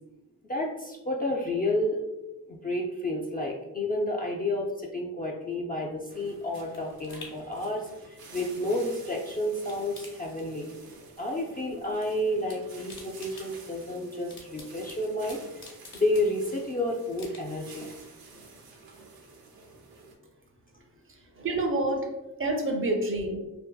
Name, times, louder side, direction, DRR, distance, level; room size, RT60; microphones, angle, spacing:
voice 1, 0.5-2.0 2.5-10.7 11.2-17.9, left 1 dB, 25° left, -1 dB, 0.3 m, -30 dB
sound 1, 5.9-9.2 9.5-11.0 11.3-12.1 12.3-16.7 17.1-17.7 18.1-18.2, left 3 dB, 60° left, 1.1 m, -50 dB
sound 2, 6.1-20.1, right 4 dB, 80° right, 0.6 m, -50 dB
voice 2, 20.7-23.4, right 2 dB, 35° right, 2 dB, 0.5 m, -29 dB
2.6 x 2.5 x 2.3 m, 1.0 s
cardioid pair, 70°, 36 cm